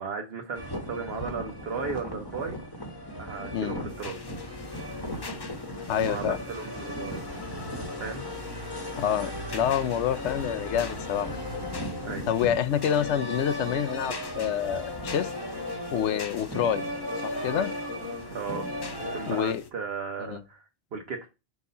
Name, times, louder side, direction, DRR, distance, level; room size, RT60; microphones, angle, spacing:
voice 1, 0.0-2.6 3.2-4.2 6.1-7.2 8.0-8.2 12.0-12.3 16.5-16.7 18.3-18.7 19.0-20.6 20.9-21.3, right 5 dB, 60° right, 1.1 m, -35 dB
sound 1, 0.5-19.4, left 1 dB, 20° left, 1.2 m, -36 dB
sound 2, 3.9-19.7, left 5 dB, 40° left, 0.3 m, -44 dB
voice 2, 5.9-6.4 9.0-11.3 12.3-15.3 15.9-16.8 17.2-17.7 19.3-19.6 20.2-20.4, left 9 dB, 75° left, 0.9 m, -27 dB
4.7 x 4.0 x 5.4 m
omnidirectional pair, 1.2 m